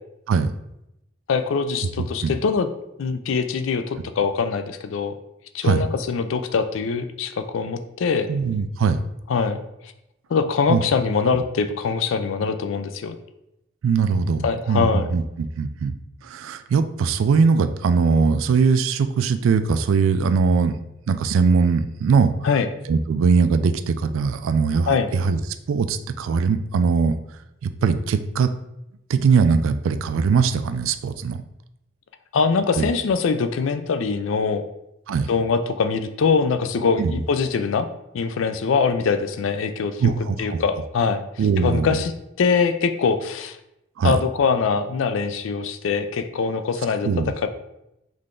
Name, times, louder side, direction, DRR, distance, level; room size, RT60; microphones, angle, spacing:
voice 1, 1.3-2.7 3.0-5.1 5.5-8.3 9.3-9.6 10.3-13.1 14.4-15.1 22.4-22.7 24.9-25.1 32.3-34.6 35.3-37.9 38.1-40.1 40.4-41.2 41.6-42.1 42.4-43.6 44.0-47.5, left 5 dB, 80° left, 9 dB, 0.4 m, -23 dB
voice 2, 8.3-9.0 10.7-10.8 13.8-15.2 15.6-15.9 16.2-20.7 21.1-22.3 22.9-25.4 25.7-27.1 27.6-28.5 29.1-31.4 32.8-32.9 35.1-35.3 37.0-37.2 40.0-40.6 41.4-42.0 44.0-44.2 47.0-47.5, right 5 dB, 85° right, 10 dB, 0.3 m, -20 dB
3.8 x 3.2 x 3.7 m, 0.85 s
head